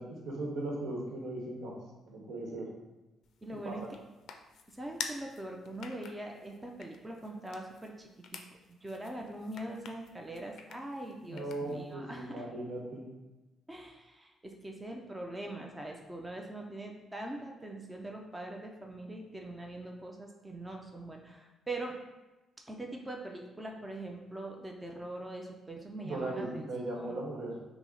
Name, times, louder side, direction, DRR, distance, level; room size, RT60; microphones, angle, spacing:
voice 1, 0.0-1.7 2.0-2.7 3.6-3.9 11.3-13.0 26.0-27.6, right 2 dB, 75° right, -2 dB, 1.1 m, -38 dB
sound 1, 3.2-11.9, left 6 dB, 75° left, 0.4 m, -48 dB
voice 2, 3.4-3.8 4.7-8.4 8.8-12.5 13.7-22.0 22.7-26.6 26.9-27.2, right 1 dB, 15° right, 1 dB, 0.5 m, -42 dB
5.9 x 2.1 x 3.9 m, 1.1 s
cardioid pair, 90°, 0 cm